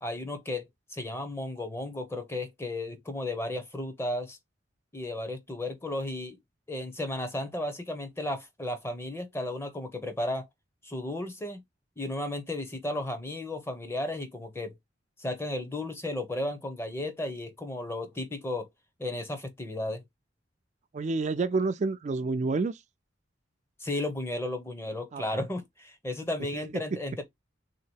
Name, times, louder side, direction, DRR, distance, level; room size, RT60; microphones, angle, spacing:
voice 1, 0.0-4.4 4.9-6.4 6.7-10.5 10.8-11.6 12.0-14.8 15.2-18.7 19.0-20.0 23.8-27.2, left 1 dB, 15° left, 0.8 m, -34 dB
voice 2, 20.9-22.8 25.1-25.2 26.5-26.6, right 3 dB, 40° right, 0.3 m, -28 dB
3.5 x 2.8 x 4.6 m
head